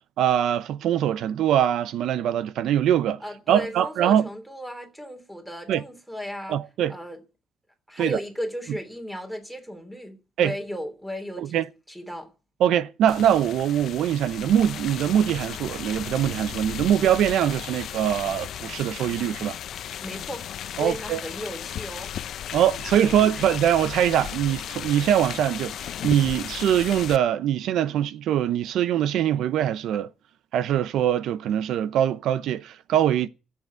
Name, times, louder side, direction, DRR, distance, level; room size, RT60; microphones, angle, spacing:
voice 1, 0.2-3.2 3.5-4.3 5.7-5.8 6.5-6.9 8.0-8.2 10.4-10.5 11.4-11.6 12.6-19.6 20.8-21.2 22.5-25.8 26.0-30.1 30.5-33.3, right 10 dB, 85° right, 0.8 m, -23 dB
voice 2, 3.2-6.6 6.9-7.2 7.9-11.6 11.9-12.3 20.0-23.4, equal, ahead, 3.1 m, -36 dB
sound 1, 13.1-27.2, left 10 dB, 65° left, 0.7 m, -35 dB
14.5 x 7.9 x 9.2 m
cardioid pair, 150°, 0 cm